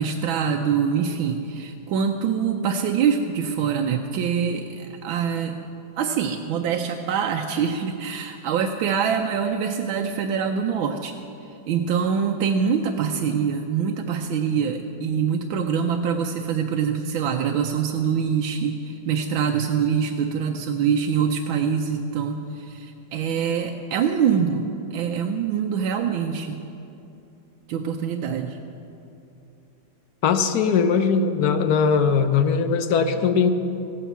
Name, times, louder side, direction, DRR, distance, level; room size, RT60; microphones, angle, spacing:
voice 1, 0.0-5.6 6.0-11.2 11.7-26.6 27.7-28.6, right 7 dB, 85° right, 3 dB, 1.5 m, -24 dB
voice 2, 30.2-33.5, left 6 dB, 60° left, 9 dB, 1.1 m, -20 dB
15.5 x 8.8 x 7.3 m, 2.7 s
omnidirectional pair, 2.1 m